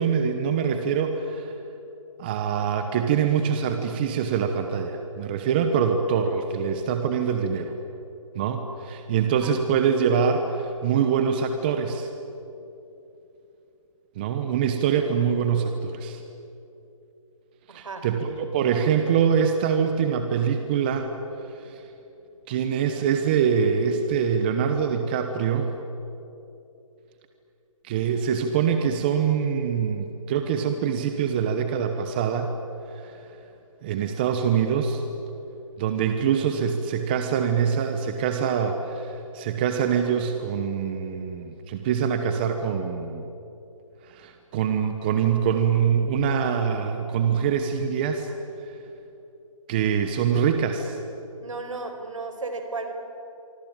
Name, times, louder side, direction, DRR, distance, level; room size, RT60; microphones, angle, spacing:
voice 1, 0.0-1.5 2.2-7.7 8.3-12.1 14.2-16.2 17.7-21.1 21.6-21.8 22.5-25.7 27.8-32.5 32.9-33.2 33.8-35.0 35.8-43.2 44.1-48.3 49.7-51.0, right 7 dB, 15° right, 6 dB, 1.0 m, -24 dB
voice 2, 17.7-18.0 51.4-52.9, right 3 dB, 65° right, 6 dB, 5.0 m, -34 dB
26.0 x 25.0 x 9.0 m, 2.9 s
hypercardioid pair, 165°, 18 cm